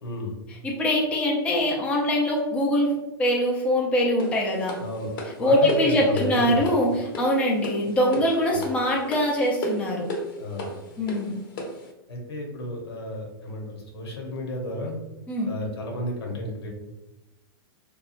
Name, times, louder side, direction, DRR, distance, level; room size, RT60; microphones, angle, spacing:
voice 1, 0.0-0.3 4.8-5.1 5.4-6.6 8.5-8.6 10.4-10.7 12.1-15.0 15.4-16.7, left 1 dB, 85° left, 0 dB, 0.9 m, -32 dB
voice 2, 0.6-4.8 5.4-10.1 11.0-11.4 15.3-15.5, left 1 dB, 10° left, -2 dB, 0.4 m, -23 dB
sound 1, 4.2-11.9, left 1 dB, 60° left, 0.7 m, -35 dB
2.8 x 2.2 x 2.4 m, 0.98 s
hypercardioid pair, 140°, 13 cm